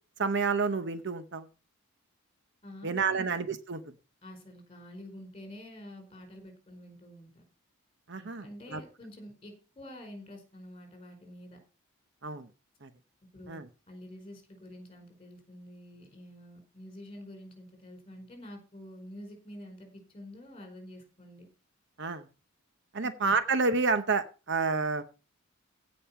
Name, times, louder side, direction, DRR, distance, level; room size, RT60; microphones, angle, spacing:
voice 1, 0.2-1.5 2.8-3.8 8.1-8.4 8.7-8.8 12.2-12.5 12.8-12.9 13.5-13.6 22.0-22.2 22.9-25.0, right 4 dB, 50° right, 11 dB, 0.8 m, -29 dB
voice 2, 2.6-3.3 4.2-7.4 8.1-11.6 13.3-13.6 13.9-21.5 23.0-23.1, left 1 dB, 25° left, 4 dB, 4.8 m, -48 dB
16.0 x 5.4 x 5.7 m, 0.33 s
head